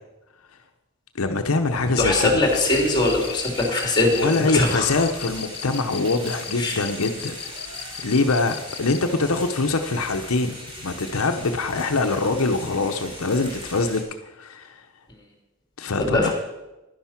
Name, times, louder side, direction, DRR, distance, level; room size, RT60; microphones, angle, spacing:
voice 1, 1.1-2.3 4.1-7.4 8.0-14.8 15.8-16.3, left 3 dB, 80° left, 6 dB, 0.9 m, -24 dB
Speech, 1.7-3.3 3.8-4.4 4.9-6.1 6.3-6.5 7.3-8.3 8.9-9.0 9.8-10.1 10.8-11.5 12.4-13.1, equal, 80° right, 5.9 m, -43 dB
voice 2, 2.0-4.9 6.6-6.8 16.0-16.3, left 2 dB, 20° left, 1 dB, 3.2 m, -21 dB
sound 1, 2.4-14.0, equal, 25° right, 3.5 m, -40 dB
Cricket, 2.5-9.1, left 11 dB, 50° left, 1.1 m, -37 dB
11.5 x 10.5 x 5.8 m, 1.0 s
head